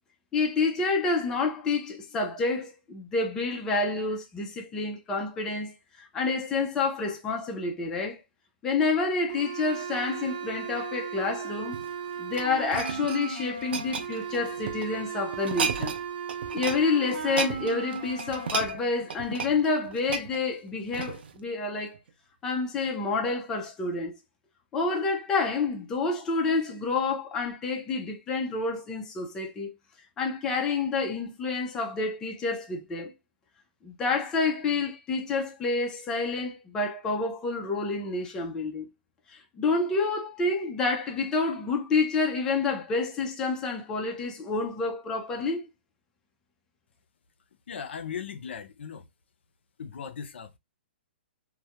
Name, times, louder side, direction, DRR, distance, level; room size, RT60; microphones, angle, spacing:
voice 1, 0.3-8.2 8.6-11.8 12.2-15.9 16.5-22.0 22.4-24.1 24.7-29.7 30.2-33.1 33.8-38.9 39.6-45.7, left 4 dB, 10° left, 0.3 m, -28 dB
sound 1, 9.3-18.6, right 7 dB, 45° right, 0.9 m, -36 dB
sound 2, 11.6-14.9 15.3-16.0 16.3-16.8 17.1-21.4 21.9-22.1, right 6 dB, 60° right, 0.4 m, -34 dB
voice 2, 47.7-49.0 49.8-50.5, left 7 dB, 80° left, 0.5 m, -38 dB
2.3 x 2.0 x 2.8 m
hypercardioid pair, 170°, 6 cm